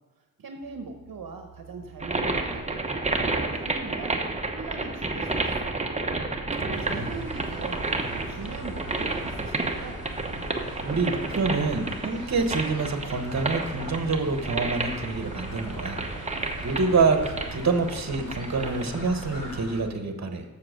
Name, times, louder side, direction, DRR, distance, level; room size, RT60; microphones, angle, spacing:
voice 1, 0.4-4.2 4.5-5.8 6.6-8.0 8.3-10.0, right 4 dB, 65° right, 4 dB, 0.9 m, -40 dB
sound 1, 0.6-19.1, right 9 dB, 20° left, 2.4 m, -49 dB
sound 2, 2.0-19.5, right 2 dB, 20° right, 0.9 m, -31 dB
voice 2, 6.6-7.1 10.8-16.0 16.6-20.4, right 4 dB, 45° right, 6 dB, 1.1 m, -27 dB
sound 3, 6.7-19.8, equal, 55° left, 3.7 m, -40 dB
7.6 x 6.9 x 6.4 m, 1.1 s
wide cardioid pair, 90°, 36 cm